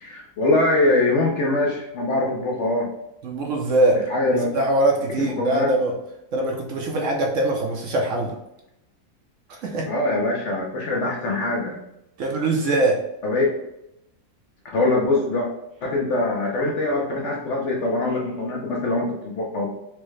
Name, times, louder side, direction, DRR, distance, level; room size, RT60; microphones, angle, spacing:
voice 1, 0.0-2.9 4.1-4.6 5.2-5.7 9.9-11.8 13.2-13.5 14.7-15.5 15.8-19.7, left 2 dB, 65° left, -1 dB, 0.8 m, -23 dB
voice 2, 3.2-6.0 6.3-8.3 9.5-9.9 12.2-13.0, right 2 dB, 65° right, 0 dB, 0.9 m, -22 dB
4.6 x 2.1 x 3.1 m, 0.84 s
omnidirectional pair, 1.6 m